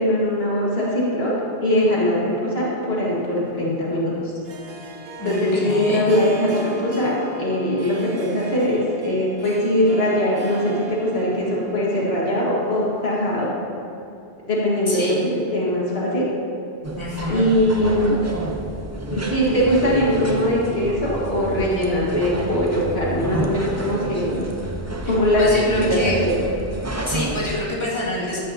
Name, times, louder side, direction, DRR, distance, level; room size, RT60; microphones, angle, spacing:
voice 1, 0.0-1.3 1.6-4.1 5.2-13.5 14.5-15.2 15.5-16.3 17.3-18.2 19.1-24.5 25.1-26.3, left 1 dB, 70° left, -6 dB, 1.9 m, -21 dB
Harp, 3.1-13.5, right 2 dB, 65° right, 1.1 m, -38 dB
voice 2, 5.2-6.0 14.9-15.2 17.0-17.5 25.4-26.2 27.0-28.4, left 1 dB, 25° left, -7 dB, 2.2 m, -27 dB
sound 1, 16.8-27.6, right 1 dB, 20° right, 0.6 m, -29 dB
14.5 x 9.7 x 2.8 m, 2.8 s
omnidirectional pair, 1.1 m